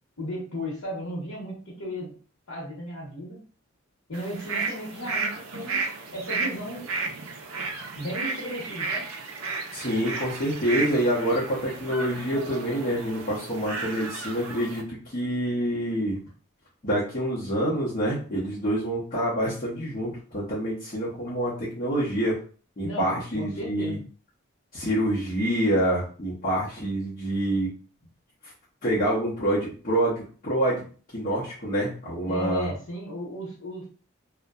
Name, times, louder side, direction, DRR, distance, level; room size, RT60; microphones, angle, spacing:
voice 1, 0.2-2.2 2.5-3.4 4.1-5.8 6.1-6.9 7.9-9.1 22.8-24.0 32.3-33.9, equal, 70° left, -5 dB, 0.8 m, -35 dB
sound 1, 4.1-14.8, right 4 dB, 85° right, 0.4 m, -33 dB
voice 2, 9.7-16.2 16.8-22.4 22.8-24.0 24.7-27.7 28.8-30.8 31.1-32.7, right 1 dB, 40° left, -8 dB, 0.7 m, -27 dB
2.6 x 2.1 x 2.3 m, 0.40 s
head